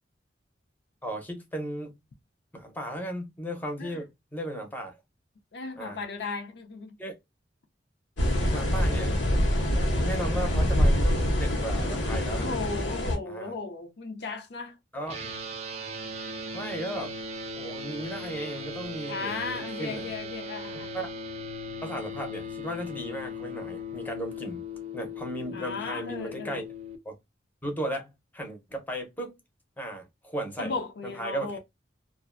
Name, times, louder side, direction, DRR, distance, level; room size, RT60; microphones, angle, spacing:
voice 1, 1.0-2.0 2.5-5.0 5.8-6.0 7.0-7.1 8.5-9.2 9.6-12.5 13.2-13.5 14.9-15.2 16.5-17.1 17.6-20.1 20.9-21.1 21.8-24.6 24.9-26.6 27.0-27.2 27.6-29.4 29.8-30.7 31.0-31.6, right 1 dB, 10° left, 0.6 m, -36 dB
voice 2, 5.5-7.0 12.3-14.8 19.1-20.9 25.5-26.6 30.6-31.6, left 4 dB, 65° left, 0.5 m, -36 dB
sound 1, 8.2-13.2, equal, 85° left, 0.8 m, -25 dB
sound 2, 15.1-27.0, left 2 dB, 35° right, 0.5 m, -38 dB
2.5 x 2.1 x 2.4 m
head